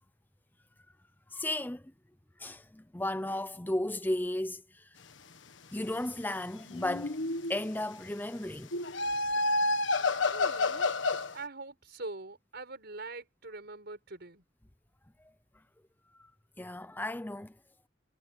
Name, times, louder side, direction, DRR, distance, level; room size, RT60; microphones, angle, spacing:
voice 1, 1.3-1.9 2.4-5.0 5.7-7.2 7.5-8.7 16.2-16.3 16.6-17.6, left 1 dB, 10° left, 0.7 m, -34 dB
sound 1, 6.7-7.7 8.7-11.3, left 2 dB, 80° left, 1.4 m, -29 dB
voice 2, 10.3-10.9 11.3-14.4, right 3 dB, 60° right, 5.6 m, -43 dB
head